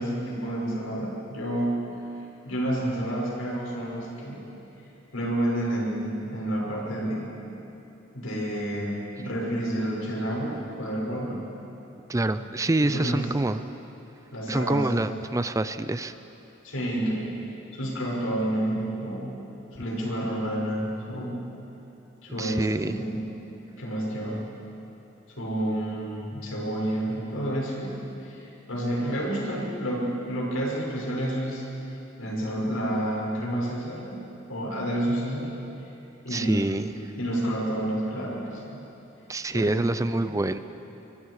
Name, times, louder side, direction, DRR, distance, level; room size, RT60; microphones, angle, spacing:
voice 1, 0.0-1.8 2.4-4.4 5.1-7.3 8.1-11.5 12.7-13.2 14.3-15.0 16.6-17.3 17.7-19.3 19.7-21.4 22.2-23.3 23.8-24.4 25.3-31.6 32.2-34.2 34.5-35.5 36.2-38.6 39.5-40.4, right 1 dB, 90° left, -4 dB, 6.4 m, -29 dB
voice 2, 12.1-13.6 14.5-16.1 22.4-23.0 36.3-36.9 39.3-40.6, right 2 dB, 15° right, 12 dB, 0.4 m, -26 dB
24.5 x 24.0 x 4.9 m, 3.0 s
head